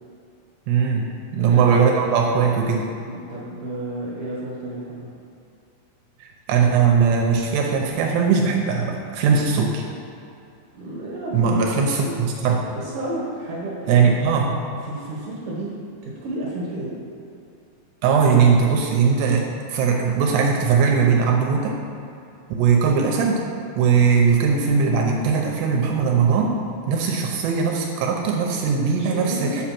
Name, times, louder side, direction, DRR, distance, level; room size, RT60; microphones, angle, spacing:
voice 1, 0.7-2.9 6.2-9.8 11.3-12.6 13.9-14.6 18.0-21.7 22.6-23.4 23.8-29.6, right 6 dB, 80° right, 0 dB, 2.7 m, -19 dB
voice 2, 1.4-1.8 3.1-5.1 10.7-11.6 12.0-12.3 12.8-14.1 14.8-17.0 29.0-29.7, right 1 dB, 60° right, -5 dB, 2.3 m, -31 dB
8.3 x 5.0 x 5.9 m, 2.6 s
omnidirectional pair, 5.2 m